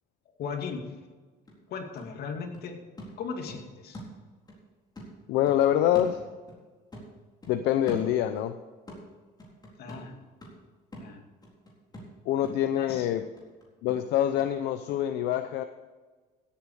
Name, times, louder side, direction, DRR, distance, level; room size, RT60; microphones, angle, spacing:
voice 1, 0.4-0.9 1.7-2.8 3.2-4.0 9.8-10.2 11.0-11.2 12.8-13.1, left 5 dB, 70° left, 4 dB, 2.5 m, -37 dB
sound 1, 1.0-1.1 1.5-4.6 5.0-6.7 6.9-8.5 8.9-14.5 14.9-15.0, equal, 25° left, 4.2 m, -45 dB
voice 2, 5.3-6.2 7.5-8.5 12.3-13.2 13.8-15.6, left 11 dB, 90° left, 9 dB, 0.7 m, -25 dB
16.0 x 8.6 x 5.0 m, 1.4 s
cardioid pair, 110°, 17 cm